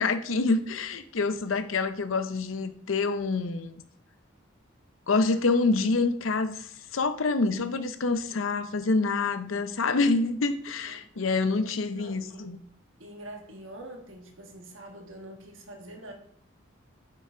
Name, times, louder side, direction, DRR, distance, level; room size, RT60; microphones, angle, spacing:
voice 1, 0.0-3.8 5.1-12.6, left 3 dB, 80° left, 10 dB, 0.7 m, -27 dB
voice 2, 10.9-11.4 11.9-12.6 13.0-16.1, right 1 dB, 70° right, 3 dB, 1.5 m, -45 dB
8.0 x 5.7 x 3.8 m, 0.63 s
head